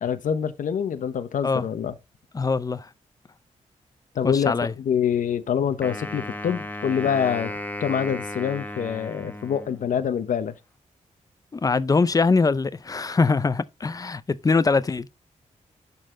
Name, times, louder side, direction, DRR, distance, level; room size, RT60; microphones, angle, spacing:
voice 1, 0.0-1.9 4.2-7.5 7.8-10.5, left 8 dB, 85° left, 0.9 m, -26 dB
voice 2, 2.3-2.9 4.2-4.7 11.5-15.1, left 4 dB, 30° left, 0.5 m, -22 dB
Wind instrument woodwind instrument, 5.8-10.1, left 1 dB, 15° left, 1.0 m, -35 dB
11.5 x 4.1 x 3.8 m
wide cardioid pair, 115°, 13 cm